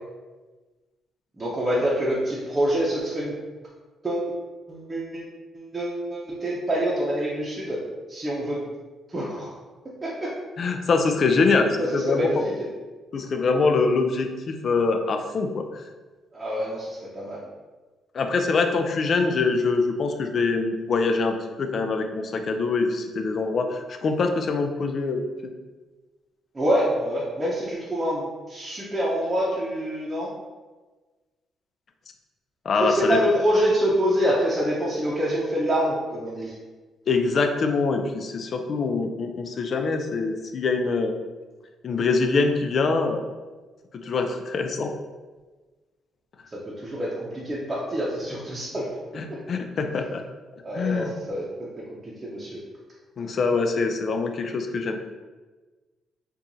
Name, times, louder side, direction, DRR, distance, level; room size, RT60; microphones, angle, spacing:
voice 1, 1.4-3.3 4.0-4.3 4.7-5.2 5.5-7.8 8.1-8.6 9.1-9.5 10.0-10.3 11.8-12.7 16.3-17.4 26.5-30.3 32.8-36.5 46.8-48.9 50.6-51.4 52.0-52.6, equal, 25° right, -7 dB, 0.8 m, -26 dB
voice 2, 10.6-12.5 13.1-15.8 18.1-25.2 32.7-33.2 37.1-41.1 41.8-43.2 44.0-44.9 49.2-50.2 50.7-51.1 53.2-55.0, left 4 dB, 50° left, 5 dB, 0.4 m, -24 dB
4.6 x 2.5 x 2.7 m, 1.3 s
cardioid pair, 90°, 0 cm